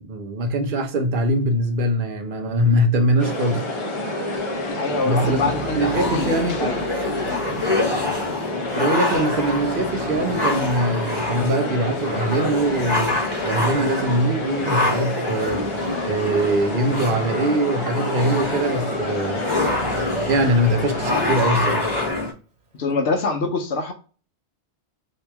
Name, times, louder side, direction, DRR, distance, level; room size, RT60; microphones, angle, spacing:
voice 1, 0.0-3.7 5.0-6.7 8.8-13.1 13.4-15.6 16.0-19.4 20.3-21.9, right 1 dB, 55° right, 0.9 m, -22 dB
sound 1, 3.2-22.1, left 2 dB, 35° left, 0.6 m, -28 dB
voice 2, 4.7-6.8 7.3-7.4 22.8-23.9, left 4 dB, 65° left, 1.0 m, -25 dB
Growling, 5.0-8.8 9.1-11.4 12.0-17.8 18.2-18.9 19.3-23.1, right 4 dB, 80° right, 1.6 m, -40 dB
sound 2, 5.1-22.3, left 2 dB, 25° right, 0.8 m, -27 dB
3.0 x 2.8 x 3.3 m
omnidirectional pair, 1.2 m